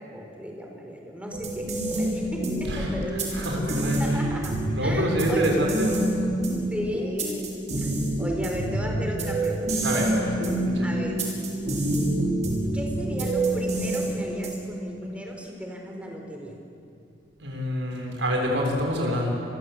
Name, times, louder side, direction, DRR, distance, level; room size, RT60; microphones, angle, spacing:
voice 1, 0.0-5.7 6.7-7.5 7.8-9.9 10.8-11.2 12.7-16.6, equal, 5° right, 1 dB, 4.7 m, -35 dB
sound 1, 1.3-14.8, right 1 dB, 40° right, 6.1 m, -27 dB
voice 2, 3.3-4.2 4.7-6.0 9.8-10.3 10.6-10.9 17.4-19.3, equal, 85° right, 0 dB, 6.6 m, -27 dB
30.0 x 22.5 x 8.3 m, 2.5 s
head